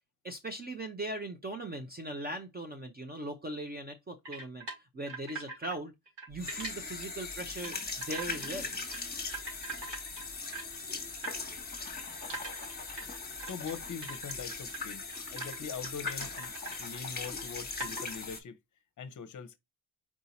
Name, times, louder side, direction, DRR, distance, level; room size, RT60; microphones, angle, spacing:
voice 1, 0.2-5.9 6.3-7.8 8.1-8.7, right 1 dB, 20° right, 0.7 m, -39 dB
sound 1, 4.3-5.8 6.1-6.7 7.3-7.8 8.0-9.0 9.3-10.8 11.2-11.4 12.0-14.8 15.1-15.6 15.8-16.8 17.2-17.3 17.8-18.2, right 3 dB, 60° right, 2.8 m, -42 dB
sound 2, 6.3-18.4, left 4 dB, 20° left, 1.3 m, -40 dB
voice 2, 13.4-15.0 15.3-16.5 16.8-18.6 19.0-19.6, left 6 dB, 40° left, 0.8 m, -42 dB
4.8 x 2.7 x 4.0 m
cardioid pair, 105°, 47 cm